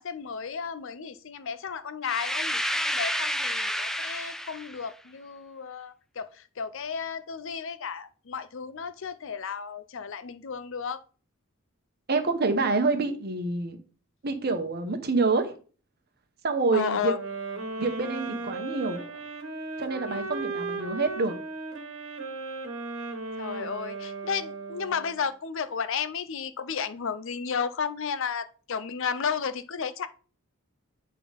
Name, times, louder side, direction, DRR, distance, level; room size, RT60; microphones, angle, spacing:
voice 1, 0.0-11.0 16.7-17.2 20.1-20.2 23.4-30.1, left 6 dB, 65° left, 13 dB, 0.6 m, -33 dB
sound 1, 2.0-4.8, equal, ahead, 0.3 m, -30 dB
voice 2, 12.1-13.8 14.2-15.5 16.4-17.1 17.8-19.0 19.8-21.4, right 3 dB, 50° right, 7 dB, 1.1 m, -27 dB
sound 2, 17.1-25.3, right 3 dB, 75° right, 1.5 m, -36 dB
8.5 x 3.8 x 5.2 m, 0.38 s
head